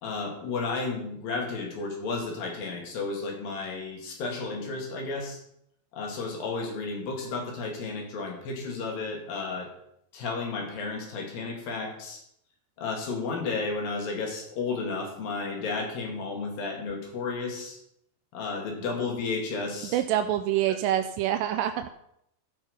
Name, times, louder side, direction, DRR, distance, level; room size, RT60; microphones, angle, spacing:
voice 1, 0.0-5.4 5.9-9.7 10.1-12.2 12.8-17.8 18.3-20.0, left 4 dB, 70° left, 1 dB, 3.8 m, -32 dB
voice 2, 19.9-21.9, right 12 dB, 80° right, 8 dB, 2.0 m, -26 dB
14.5 x 5.8 x 5.5 m, 0.76 s
omnidirectional pair, 4.3 m